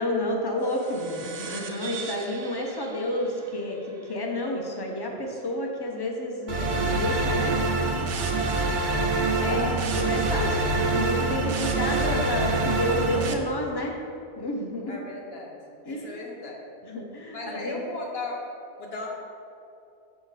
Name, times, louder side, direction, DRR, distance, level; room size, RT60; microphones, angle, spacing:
voice 1, 0.0-3.8 4.0-7.6 9.4-10.5 10.9-14.0 14.4-15.0 15.9-16.2 16.8-17.8, left 1 dB, 25° left, 1 dB, 0.7 m, -30 dB
sound 1, 0.6-5.5, right 6 dB, 60° right, 0.8 m, -42 dB
sound 2, 6.5-13.3, right 3 dB, 90° right, 1.0 m, -25 dB
voice 2, 9.4-9.9 10.2-11.0 14.9-15.6 15.9-16.6 17.3-18.4 18.8-19.2, left 3 dB, 60° left, -1 dB, 1.3 m, -36 dB
6.1 x 6.0 x 4.1 m, 2.7 s
omnidirectional pair, 1.2 m